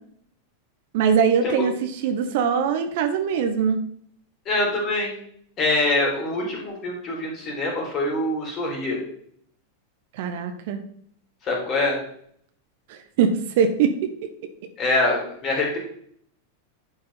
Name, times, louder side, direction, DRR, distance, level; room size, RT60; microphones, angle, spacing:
voice 1, 0.9-3.8 10.1-10.8 12.9-14.3, right 7 dB, 50° right, 7 dB, 0.9 m, -22 dB
voice 2, 4.5-5.1 5.6-9.0 11.4-12.0 14.8-15.8, left 2 dB, 30° left, -2 dB, 3.8 m, -24 dB
11.0 x 5.3 x 4.2 m, 0.65 s
figure-of-eight pair, 90°, 0 cm